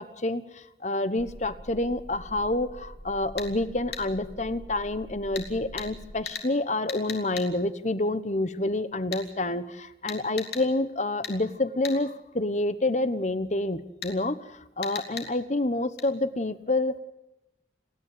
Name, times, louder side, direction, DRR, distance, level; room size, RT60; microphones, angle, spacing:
voice 1, 0.0-17.0, left 2 dB, 40° left, 14 dB, 1.1 m, -28 dB
sound 1, 1.2-6.2, equal, 15° left, 2.3 m, -45 dB
sound 2, 3.4-3.5 3.9-4.1 5.4-5.5 5.8-5.9 6.3-6.5 6.9-7.5 9.1-9.3 10.1-10.7 11.2-11.4 11.8-12.0 14.0-14.1 14.8-15.3 16.0-16.1, left 7 dB, 65° left, 3.3 m, -36 dB
29.5 x 10.5 x 9.2 m, 0.91 s
head